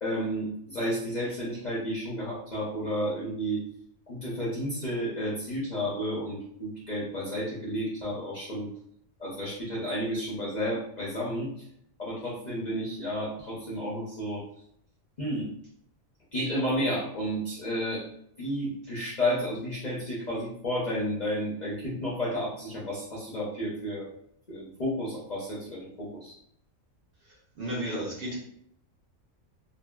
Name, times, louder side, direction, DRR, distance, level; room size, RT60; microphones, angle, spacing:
voice 1, 0.0-3.6 4.1-8.7 9.2-11.5 12.0-14.4 15.2-15.5 16.3-18.0 18.4-24.1 24.5-26.3, equal, 45° left, -7 dB, 0.6 m, -31 dB
voice 2, 27.6-28.4, equal, 55° right, -5 dB, 0.7 m, -32 dB
2.6 x 2.5 x 2.2 m, 0.69 s
omnidirectional pair, 1.4 m